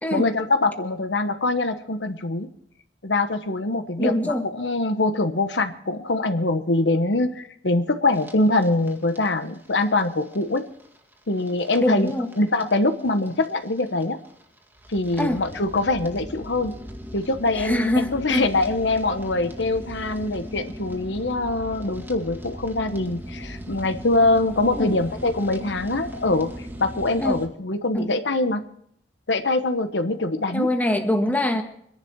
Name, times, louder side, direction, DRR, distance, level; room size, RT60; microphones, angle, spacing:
voice 1, 0.1-2.5 3.0-10.7 11.3-14.2 14.9-16.8 17.1-28.7 29.3-30.7, left 2 dB, 75° left, 8 dB, 1.2 m, -23 dB
voice 2, 4.0-4.5 11.8-12.3 15.2-15.4 17.6-18.5 24.7-25.0 27.2-27.4 27.9-28.1 30.5-31.6, left 1 dB, 10° left, 4 dB, 1.6 m, -23 dB
sound 1, 8.1-27.5, equal, 10° right, 2.1 m, -39 dB
24.5 x 11.0 x 4.7 m, 0.71 s
head